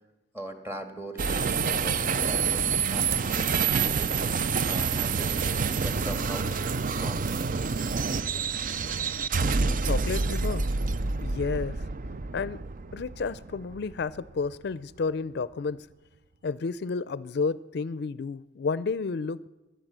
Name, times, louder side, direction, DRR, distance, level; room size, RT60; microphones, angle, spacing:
voice 1, 0.3-2.6 2.9-4.1 4.7-6.6 6.9-7.4, right 1 dB, 15° right, 6 dB, 1.7 m, -40 dB
sound 1, 1.2-14.5, right 5 dB, 50° right, 0.5 m, -28 dB
voice 2, 9.8-10.7 11.2-11.8 12.3-12.6 12.9-15.8 16.4-19.5, left 4 dB, 65° left, 17 dB, 0.4 m, -31 dB
17.0 x 11.0 x 7.5 m, 1.1 s
head